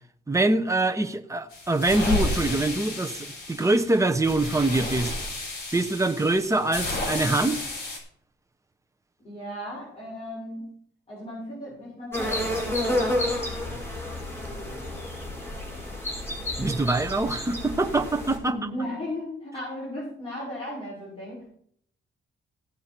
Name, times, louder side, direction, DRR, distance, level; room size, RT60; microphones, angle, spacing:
voice 1, 0.3-5.1 5.7-7.7 16.6-18.6, right 2 dB, 15° right, 1.0 m, -24 dB
sound 1, 1.5-8.0, left 2 dB, 55° left, 5.8 m, -32 dB
voice 2, 9.2-10.7 11.1-13.2 18.4-21.5, left 1 dB, 30° left, 6.2 m, -36 dB
sound 2, 12.1-18.4, left 1 dB, 10° left, 5.6 m, -30 dB
17.0 x 7.3 x 4.5 m
cardioid pair, 110°, 20 cm